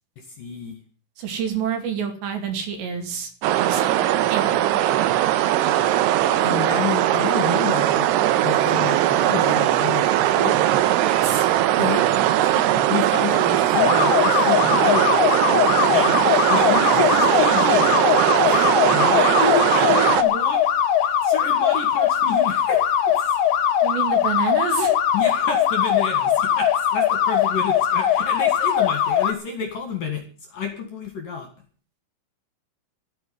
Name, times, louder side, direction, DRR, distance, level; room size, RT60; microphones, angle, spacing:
voice 1, 0.2-0.8 6.4-8.1 8.4-10.6 11.8-12.2 12.4-15.3 15.9-16.2 16.5-18.0 18.9-20.6 21.2-23.4 25.1-31.5, left 6 dB, 55° left, 4 dB, 2.7 m, -30 dB
voice 2, 1.2-4.7 11.0-11.5 18.4-18.7 23.8-25.0, right 7 dB, 60° right, 5 dB, 4.3 m, -29 dB
sound 1, 3.4-20.2, right 13 dB, 85° right, 2.4 m, -19 dB
sound 2, 13.7-29.3, left 9 dB, 90° left, 1.9 m, -20 dB
13.0 x 9.3 x 9.3 m, 0.41 s
omnidirectional pair, 6.0 m